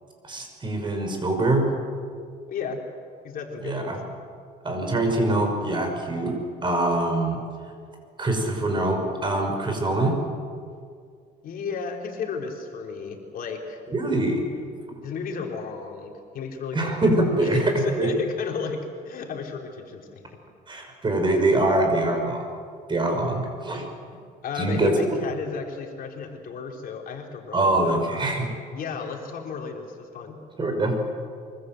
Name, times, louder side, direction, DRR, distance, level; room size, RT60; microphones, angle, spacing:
voice 1, 0.2-1.7 3.6-4.0 4.6-6.3 6.6-7.4 8.2-10.2 13.9-14.4 16.7-18.1 20.7-22.4 22.9-23.8 24.6-25.1 27.5-28.5 30.6-30.9, right 2 dB, 30° right, 4 dB, 6.2 m, -23 dB
voice 2, 2.5-2.8 3.2-3.9 11.4-13.8 15.0-20.2 24.4-28.3 28.7-30.4, left 5 dB, 60° left, 2 dB, 3.8 m, -33 dB
24.5 x 24.5 x 7.9 m, 2.1 s
cardioid pair, 110°, 17 cm